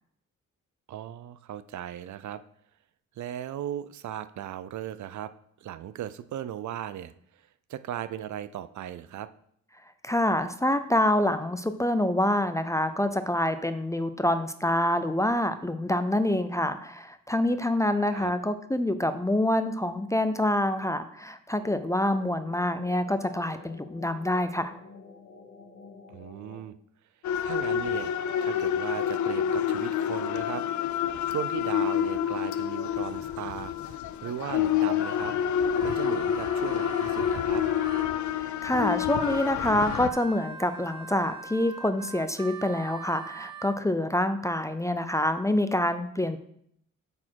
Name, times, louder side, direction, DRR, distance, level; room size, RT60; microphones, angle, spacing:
voice 1, 0.9-2.4 3.2-5.3 5.6-9.3 18.1-18.3 26.1-26.8 27.4-28.1 28.4-30.6 31.3-35.3 35.8-37.6, right 11 dB, 65° right, 13 dB, 0.4 m, -37 dB
voice 2, 10.0-24.7 38.4-46.4, left 1 dB, 10° left, 10 dB, 0.4 m, -26 dB
sound 1, 21.5-26.6, left 4 dB, 50° left, 1.3 m, -49 dB
sound 2, 27.2-40.1, left 9 dB, 70° left, 0.5 m, -28 dB
Harmonica, 34.6-38.1 38.6-43.8, right 4 dB, 15° right, 0.7 m, -43 dB
8.5 x 4.2 x 4.5 m, 0.69 s
wide cardioid pair, 125°, 31 cm